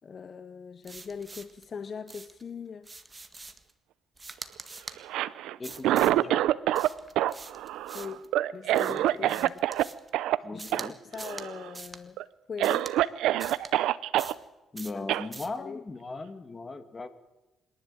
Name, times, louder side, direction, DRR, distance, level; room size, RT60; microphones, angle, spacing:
voice 1, 0.0-2.9 7.9-8.3 8.5-9.6 10.5-12.2 12.5-12.9 14.9-15.1 15.6-15.8, left 6 dB, 45° left, 14 dB, 0.9 m, -41 dB
sound 1, 0.8-1.7 2.1-2.4 2.8-3.7 4.2-5.0 5.6-6.2 6.7-8.3 8.7-10.1 10.6-10.9 11.1-11.5 11.7-12.0 12.6-13.0 13.4-13.7 14.2-14.5 14.8-15.0 15.3-15.6, right 3 dB, 20° right, 1.7 m, -44 dB
Cough, 5.0-6.9 7.2-9.8 10.1-10.4 10.7-10.9 11.2-11.7 12.2-12.3 12.6-14.3 15.1-15.3, right 13 dB, 90° right, 0.6 m, -26 dB
voice 2, 5.6-6.4 8.9-9.4 10.4-11.0 14.7-17.1, left 3 dB, 25° left, 11 dB, 2.0 m, -39 dB
25.5 x 11.5 x 8.9 m, 1.1 s
cardioid pair, 90°, 0 cm